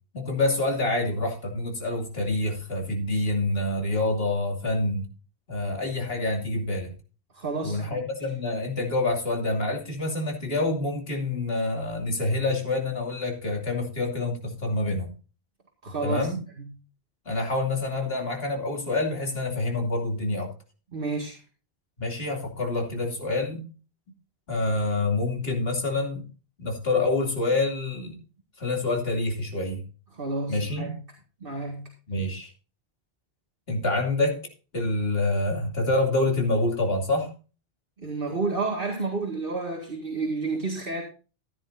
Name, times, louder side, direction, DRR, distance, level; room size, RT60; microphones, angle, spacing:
voice 1, 0.1-5.1 5.5-7.0 7.6-15.1 16.0-16.4 17.2-20.5 22.0-23.7 24.5-26.2 26.6-28.2 28.6-29.9 30.5-30.9 32.1-32.5 33.7-34.4 34.7-37.3, left 2 dB, 65° left, 2 dB, 3.0 m, -27 dB
voice 2, 7.3-8.1 15.8-16.3 16.6-16.7 20.9-21.4 30.1-31.0 31.4-31.9 38.0-41.0, right 3 dB, 60° right, 0 dB, 2.2 m, -30 dB
14.5 x 10.5 x 2.6 m, 0.35 s
omnidirectional pair, 1.1 m